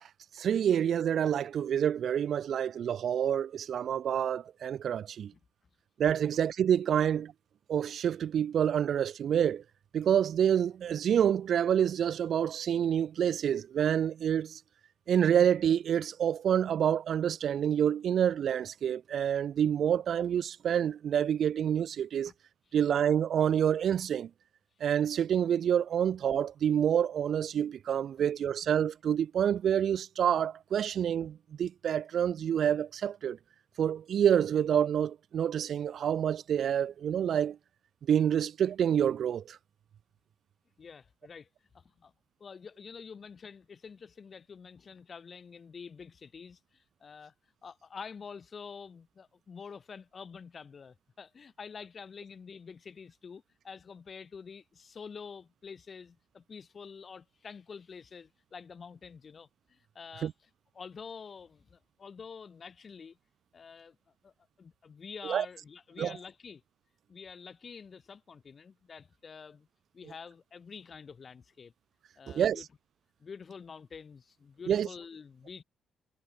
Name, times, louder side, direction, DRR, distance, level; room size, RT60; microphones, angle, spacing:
voice 1, 0.3-5.3 6.0-7.3 7.7-9.6 9.9-14.6 15.1-22.3 22.7-24.3 24.8-33.4 33.8-37.6 38.1-39.6 60.2-60.3 65.2-65.5 66.0-66.1 72.3-72.6 74.7-74.9, right 9 dB, 60° right, 0.5 m, -27 dB
voice 2, 40.8-41.5 41.7-42.1 42.4-47.3 47.6-60.3 60.7-63.2 63.5-64.0 64.2-64.3 64.6-66.6 67.1-69.7 69.9-71.7 72.2-72.7 73.2-75.6, left 6 dB, 40° left, 4.0 m, -47 dB
cardioid pair, 90°, 0 cm